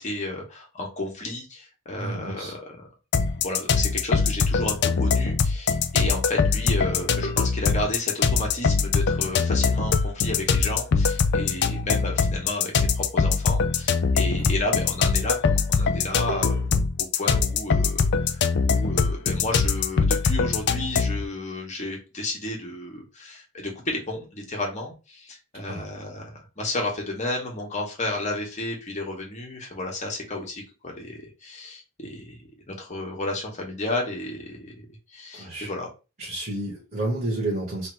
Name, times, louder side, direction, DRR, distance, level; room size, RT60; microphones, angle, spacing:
voice 1, 0.0-2.8 3.4-16.7 17.0-32.4 32.7-34.9 35.1-35.9, left 2 dB, 35° left, 0 dB, 1.3 m, -32 dB
voice 2, 1.9-2.5 14.4-14.5 25.7-25.9 35.3-35.7 36.2-37.9, right 1 dB, 40° right, -4 dB, 1.5 m, -30 dB
sound 1, 3.1-21.2, left 5 dB, 50° left, 0.4 m, -22 dB
3.3 x 2.9 x 4.3 m, 0.30 s
head